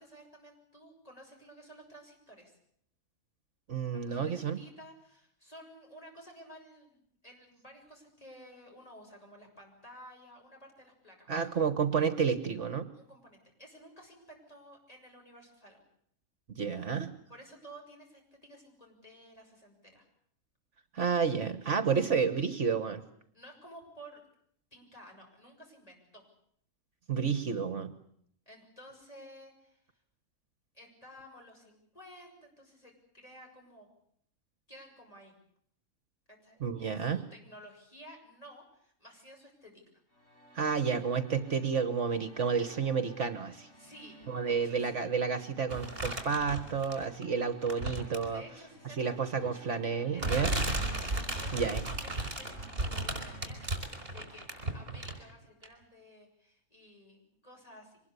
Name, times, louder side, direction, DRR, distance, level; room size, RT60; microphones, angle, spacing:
voice 1, 0.0-2.6 4.0-11.3 12.9-15.8 17.3-20.1 23.3-24.3 24.7-26.3 28.4-30.0 30.7-33.9 34.7-35.3 36.3-39.8 43.7-45.1 48.3-49.8 50.1-50.6 51.2-58.0, equal, 25° left, 1 dB, 6.8 m, -53 dB
voice 2, 3.7-4.6 11.3-12.9 16.5-17.2 20.9-23.0 27.1-27.9 36.6-37.2 40.5-43.7 44.3-48.4 49.0-50.5 51.5-51.8, right 6 dB, 60° right, 12 dB, 1.6 m, -30 dB
sound 1, 40.1-53.8, equal, 60° left, 7.0 m, -56 dB
sound 2, 45.7-47.2 47.6-48.4 49.4-49.5 50.2-55.3 55.6-55.7, right 2 dB, 40° right, 4.7 m, -35 dB
24.0 x 20.5 x 8.3 m, 0.68 s
omnidirectional pair, 1.5 m